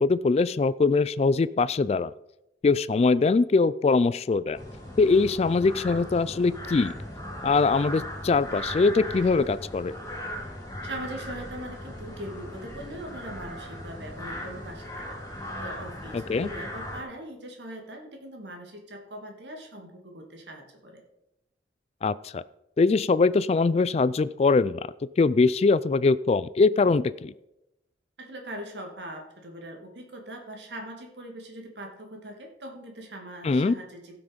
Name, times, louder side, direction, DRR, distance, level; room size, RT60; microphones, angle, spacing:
voice 1, 0.0-2.1 2.6-4.6 5.0-6.9 7.4-9.9 16.1-16.5 22.0-22.4 22.8-24.8 25.2-27.3 33.4-33.7, left 4 dB, 35° left, 18 dB, 0.3 m, -22 dB
sound 1, 4.6-17.0, left 1 dB, 15° left, 3.6 m, -38 dB
voice 2, 10.8-15.2 15.6-21.0 28.2-34.2, right 1 dB, 80° right, 3 dB, 2.2 m, -41 dB
16.5 x 6.0 x 5.1 m, 0.89 s
head